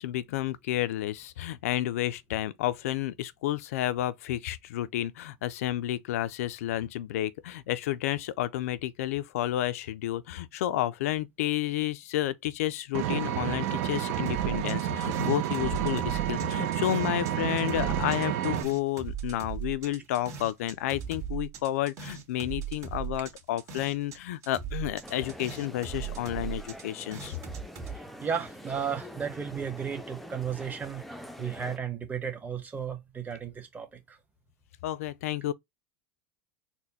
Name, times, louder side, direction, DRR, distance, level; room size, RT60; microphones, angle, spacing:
voice 1, 0.0-27.4 34.8-35.5, left 13 dB, 80° left, 0.4 m, -31 dB
Vehicle, 12.9-18.6, right 12 dB, 60° right, 0.6 m, -30 dB
sound 1, 14.3-17.3 17.6-24.2 24.4-28.0, right 8 dB, 40° right, 1.7 m, -38 dB
sound 2, 25.0-31.8, equal, ahead, 0.5 m, -45 dB
voice 2, 27.9-34.2, right 7 dB, 20° right, 1.1 m, -34 dB
4.2 x 2.1 x 4.1 m
supercardioid pair, 115°, 8 cm